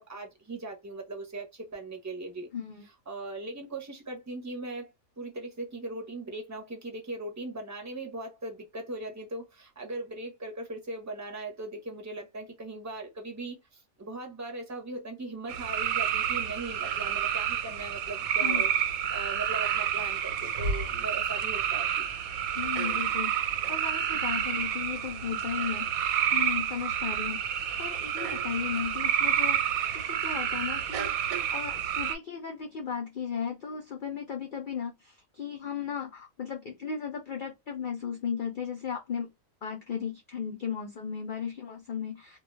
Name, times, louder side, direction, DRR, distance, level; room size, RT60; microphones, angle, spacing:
voice 1, 0.0-2.5 3.1-18.7 19.1-22.1, right 2 dB, 15° right, 0.6 m, -39 dB
voice 2, 2.5-2.8 18.4-18.6 22.5-39.3 39.6-42.4, left 7 dB, 75° left, 0.4 m, -36 dB
sound 1, 15.5-32.2, right 9 dB, 85° right, 1.0 m, -29 dB
2.3 x 2.2 x 3.0 m
omnidirectional pair, 1.5 m